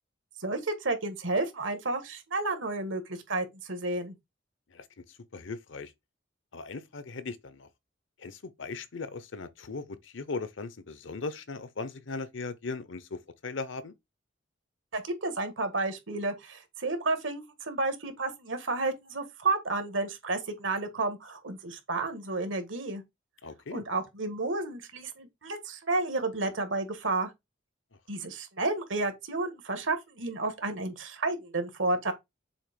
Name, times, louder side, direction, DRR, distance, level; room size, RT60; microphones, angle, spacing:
voice 1, 0.4-4.1 14.9-23.0 23.7-27.3 28.1-32.1, right 3 dB, 80° right, 1.7 m, -31 dB
voice 2, 4.7-5.9 6.5-7.7 8.2-13.9 23.4-23.8, left 3 dB, 75° left, 0.8 m, -38 dB
7.1 x 2.9 x 5.1 m
head